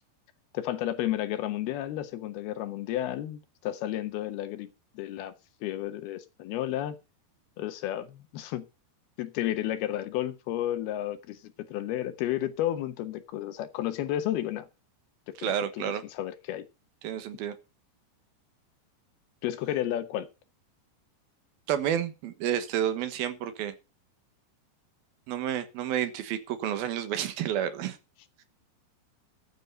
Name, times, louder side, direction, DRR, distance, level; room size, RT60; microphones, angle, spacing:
voice 1, 0.5-5.3 5.6-7.0 7.6-8.7 9.2-14.7 15.3-16.7 19.4-20.3, left 12 dB, 70° left, 11 dB, 2.7 m, -32 dB
voice 2, 15.4-16.0 17.0-17.5 21.7-23.7 25.3-28.0, right 10 dB, 65° right, 11 dB, 2.9 m, -30 dB
13.5 x 9.3 x 5.4 m, 0.29 s
omnidirectional pair, 5.0 m